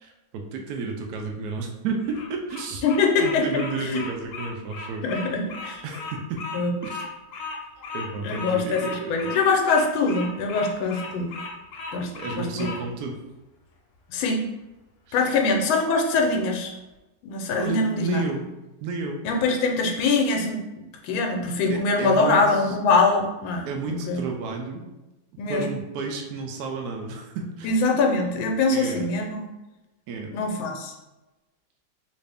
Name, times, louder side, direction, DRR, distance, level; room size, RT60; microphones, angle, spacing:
voice 1, 0.0-2.8 3.2-5.0 5.8-6.4 6.8-7.0 7.9-9.1 11.9-13.2 15.1-15.4 17.6-18.4 18.8-19.2 21.7-22.8 23.7-24.8 25.5-27.8 28.7-29.1 30.1-30.3, right 4 dB, 80° right, 2 dB, 0.8 m, -32 dB
Bird vocalization bird call bird song, 2.0-12.8, left 4 dB, 70° left, 1.1 m, -36 dB
voice 2, 2.8-4.0 5.0-5.8 6.5-6.8 8.2-11.4 11.9-12.1 12.3-12.7 14.1-14.4 15.1-16.7 17.2-18.2 19.2-20.6 21.0-23.7 24.1-24.2 25.4-25.7 27.6-29.5 30.3-30.9, left 3 dB, 85° left, 2 dB, 1.4 m, -23 dB
3.2 x 2.6 x 3.3 m, 1.0 s
omnidirectional pair, 2.2 m